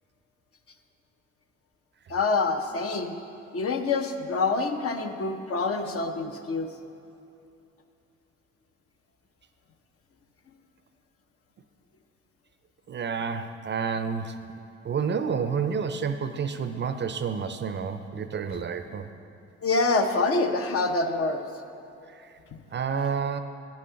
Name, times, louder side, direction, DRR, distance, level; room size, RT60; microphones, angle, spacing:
voice 1, 2.1-3.2 3.5-6.7 19.6-21.4, left 3 dB, 50° left, 6 dB, 0.8 m, -26 dB
voice 2, 12.9-14.4 14.8-19.1 22.1-22.3 22.7-23.4, right 6 dB, 35° right, 9 dB, 0.5 m, -29 dB
10.5 x 6.3 x 5.7 m, 2.7 s
cardioid pair, 90°, 30 cm